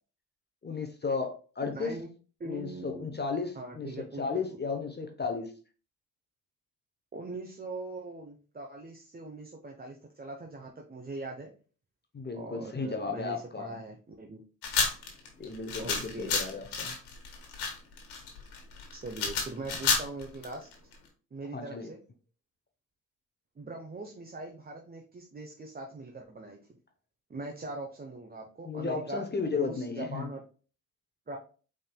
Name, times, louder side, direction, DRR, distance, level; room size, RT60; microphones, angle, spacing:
voice 1, 0.6-2.0 2.4-5.5 12.1-13.8 15.4-16.9 21.5-21.9 28.6-30.3, left 4 dB, 25° left, 5 dB, 0.8 m, -34 dB
voice 2, 1.7-2.1 2.4-3.1 3.5-4.2 4.5-4.6 7.1-11.5 12.3-14.4 15.8-16.4 18.9-20.7 21.3-22.0 23.6-26.6 27.3-29.3 29.5-30.4 31.3-31.4, right 2 dB, 25° right, 1 dB, 0.8 m, -41 dB
sound 1, 14.6-20.9, left 5 dB, 80° left, 1.6 m, -31 dB
5.2 x 3.7 x 2.2 m, 0.38 s
supercardioid pair, 65°, 39 cm